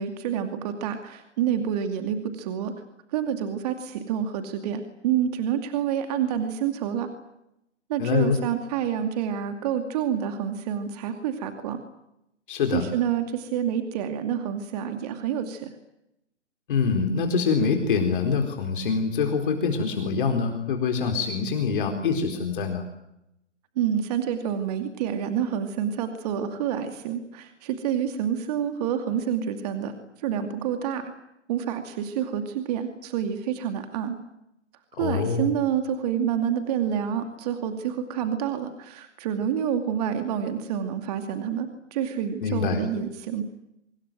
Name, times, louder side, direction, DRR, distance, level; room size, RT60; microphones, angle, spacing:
voice 1, 0.0-2.7 3.1-7.1 7.9-11.8 12.7-15.7 23.8-29.9 30.2-31.1 31.5-34.2 35.0-43.4, right 9 dB, 35° right, 7 dB, 2.5 m, -28 dB
voice 2, 8.0-8.4 12.5-12.9 16.7-22.8 35.0-35.5 42.4-42.8, left 5 dB, 45° left, 4 dB, 4.3 m, -25 dB
25.5 x 21.5 x 9.1 m, 0.82 s
figure-of-eight pair, 135°, 36 cm